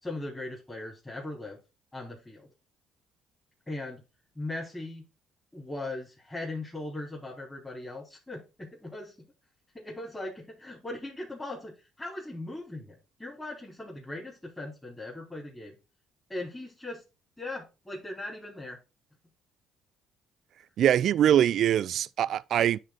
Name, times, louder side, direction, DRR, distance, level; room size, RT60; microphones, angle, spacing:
voice 1, 0.0-1.6 1.9-2.5 3.7-4.0 4.4-5.0 5.5-9.1 9.7-15.7 16.3-17.0 17.4-18.8, left 2 dB, 15° left, 4.0 m, -39 dB
voice 2, 20.8-22.8, right 10 dB, 65° right, 0.3 m, -23 dB
9.9 x 4.0 x 3.9 m
hypercardioid pair, 60°, 0 cm